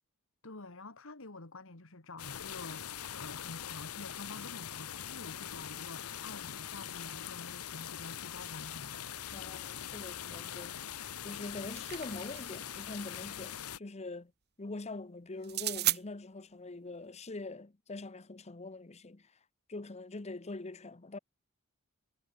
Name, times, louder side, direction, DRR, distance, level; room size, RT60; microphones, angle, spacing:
voice 1, 0.4-9.0, left 2 dB, 65° left, 2.2 m, -48 dB
sound 1, 2.2-13.8, left 9 dB, 85° left, 1.1 m, -42 dB
voice 2, 9.3-10.8 11.2-14.3 14.6-19.3 19.7-21.2, left 2 dB, 30° left, 0.8 m, -43 dB
sound 2, 11.4-12.7 15.4-16.0, right 15 dB, 50° right, 1.2 m, -34 dB
head